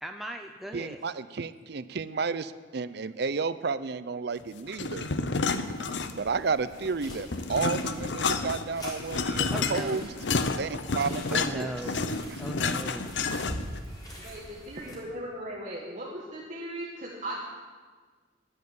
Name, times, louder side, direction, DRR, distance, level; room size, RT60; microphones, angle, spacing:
voice 1, 0.0-1.0 9.5-10.0 11.3-12.1 12.4-13.2, equal, ahead, 3 dB, 0.6 m, -38 dB
voice 2, 0.7-5.1 6.2-10.1 10.5-11.8 12.3-12.4, right 4 dB, 65° right, 15 dB, 0.6 m, -32 dB
sound 1, 4.7-6.4 6.8-13.8, left 4 dB, 90° left, 0.8 m, -30 dB
sound 2, 5.4-14.9, equal, 25° left, 4.0 m, -45 dB
voice 3, 14.2-17.4, right 1 dB, 45° right, -4 dB, 1.8 m, -38 dB
11.0 x 10.5 x 8.6 m, 1.5 s
head